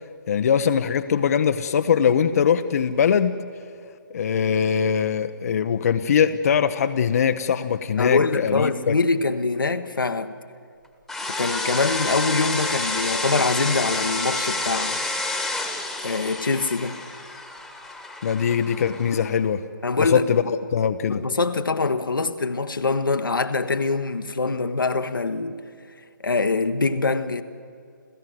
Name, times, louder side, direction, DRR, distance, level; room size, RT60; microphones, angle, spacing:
voice 1, 0.3-3.4 4.1-9.0 18.2-19.6 20.0-21.2, left 7 dB, 50° left, 0.8 m, -21 dB
voice 2, 8.0-10.3 11.4-15.0 16.0-17.0 19.8-20.3 21.1-25.6 26.2-27.4, left 3 dB, 80° left, 1.2 m, -24 dB
sound 1, 11.1-19.2, left 2 dB, ahead, 1.7 m, -29 dB
30.0 x 14.5 x 7.8 m
figure-of-eight pair, 145°, 11 cm